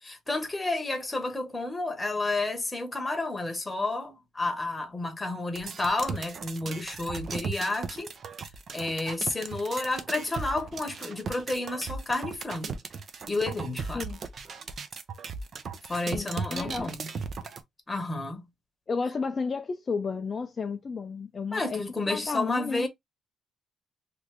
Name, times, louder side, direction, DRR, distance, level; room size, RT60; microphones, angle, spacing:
voice 1, 0.0-8.1 8.7-12.8 13.3-14.0 15.9-17.1 17.9-18.4 21.5-22.9, left 2 dB, 20° left, 1.0 m, -31 dB
sound 1, 5.6-17.6, right 5 dB, 50° right, 0.6 m, -37 dB
voice 2, 16.1-16.9 18.9-22.9, left 4 dB, 40° left, 0.4 m, -32 dB
3.1 x 2.6 x 3.0 m
cardioid pair, 90°, 0 cm